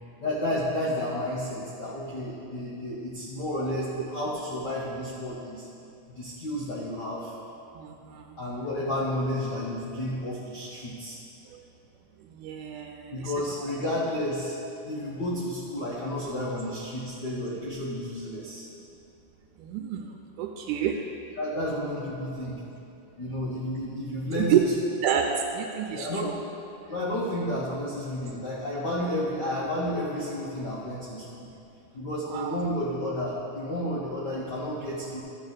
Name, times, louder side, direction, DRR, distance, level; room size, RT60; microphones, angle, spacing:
voice 1, 0.2-5.7 6.1-7.3 8.4-11.2 13.1-14.5 14.8-18.6 21.4-22.6 23.2-24.7 25.9-26.3 26.9-31.4 31.9-35.2, left 1 dB, 80° left, -5 dB, 0.9 m, -31 dB
voice 2, 7.8-8.4 12.2-13.3 19.6-21.0 24.4-24.6 25.0-26.4 32.3-32.6, right 9 dB, 85° right, 3 dB, 2.1 m, -29 dB
13.0 x 7.0 x 4.0 m, 2.7 s
omnidirectional pair, 3.6 m